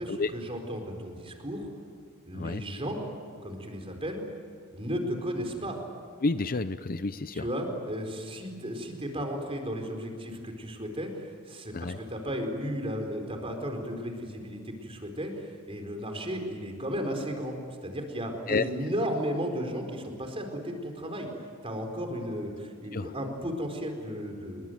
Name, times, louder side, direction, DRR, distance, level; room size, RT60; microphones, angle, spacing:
voice 1, 0.0-1.7 2.3-3.0 3.4-4.2 4.7-5.8 7.3-17.6 17.8-24.6, equal, 25° right, 4 dB, 4.4 m, -34 dB
voice 2, 6.2-7.5 11.7-12.0 18.5-18.6 22.9-23.1, left 3 dB, 40° left, 12 dB, 0.7 m, -30 dB
27.5 x 22.5 x 9.3 m, 2.2 s
head